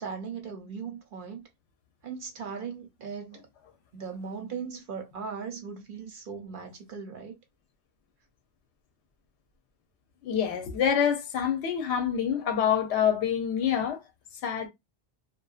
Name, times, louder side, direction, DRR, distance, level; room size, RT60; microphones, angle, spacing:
voice 1, 0.0-1.5 2.0-3.5 3.9-7.3, right 6 dB, 55° right, 0.8 m, -38 dB
voice 2, 10.2-14.0 14.4-14.7, left 8 dB, 80° left, 0.9 m, -26 dB
2.6 x 2.1 x 2.3 m
omnidirectional pair, 1.1 m